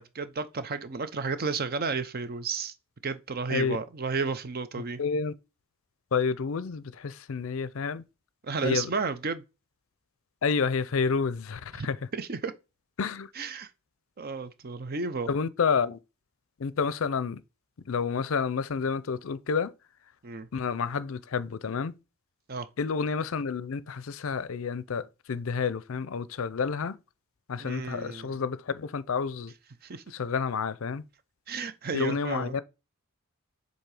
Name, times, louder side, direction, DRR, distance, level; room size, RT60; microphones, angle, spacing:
voice 1, 0.0-2.7 3.0-5.0 8.4-9.4 11.8-11.9 12.1-12.5 13.3-13.7 14.2-15.3 20.2-20.5 22.5-22.7 27.6-28.4 29.8-30.0 31.5-32.6, right 4 dB, 45° right, 0.6 m, -32 dB
voice 2, 5.0-5.3 6.1-8.0 8.6-8.9 10.4-12.0 13.0-13.3 15.3-16.0 16.6-17.4 17.9-19.7 20.5-22.0 22.8-27.0 27.5-29.5 30.1-31.1 31.9-32.6, left 5 dB, 65° left, 0.5 m, -29 dB
7.5 x 2.7 x 4.8 m
head